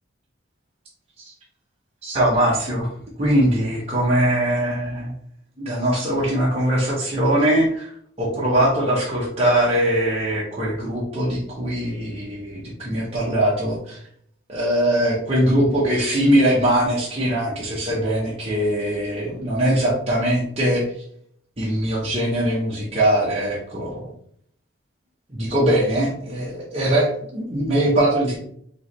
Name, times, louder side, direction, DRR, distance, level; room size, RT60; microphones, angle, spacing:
voice 1, 2.0-2.9 3.2-5.1 5.6-7.9 8.2-14.0 14.5-20.8 21.6-24.1 25.3-28.4, right 1 dB, 30° right, -7 dB, 0.9 m, -21 dB
4.7 x 3.0 x 3.0 m, 0.66 s
head